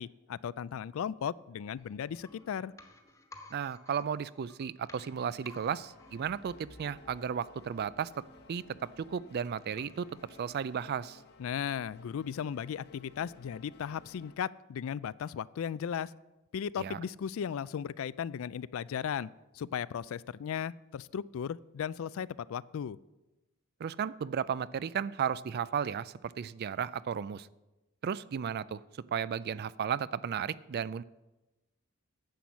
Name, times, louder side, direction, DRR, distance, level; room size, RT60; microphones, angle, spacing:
voice 1, 0.0-2.7 11.4-16.1 16.5-23.0, left 8 dB, 70° left, 20 dB, 0.3 m, -36 dB
sound 1, 1.8-11.5 11.8-11.9, left 2 dB, 15° left, 1.3 m, -57 dB
voice 2, 3.5-8.1 8.5-8.6 9.0-10.1 10.4-11.2 16.8-17.0 23.8-27.5 28.0-28.8 29.1-31.0, right 7 dB, 50° right, 18 dB, 0.3 m, -34 dB
sound 2, 5.0-14.4, left 3 dB, 50° left, 0.9 m, -57 dB
10.5 x 7.8 x 7.1 m, 1.0 s
head